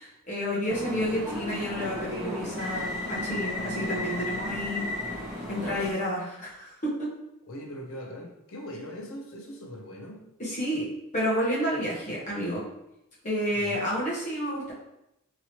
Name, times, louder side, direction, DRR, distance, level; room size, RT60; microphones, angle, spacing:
voice 1, 0.0-4.9 5.5-7.1 10.4-10.9 11.1-12.7 13.2-14.7, equal, 35° left, -6 dB, 0.9 m, -30 dB
sound 1, 0.7-5.9, left 1 dB, 5° right, 0.7 m, -33 dB
voice 2, 7.5-10.2 13.5-13.9, left 1 dB, 65° left, 1 dB, 0.6 m, -40 dB
3.0 x 2.8 x 2.8 m, 0.85 s
head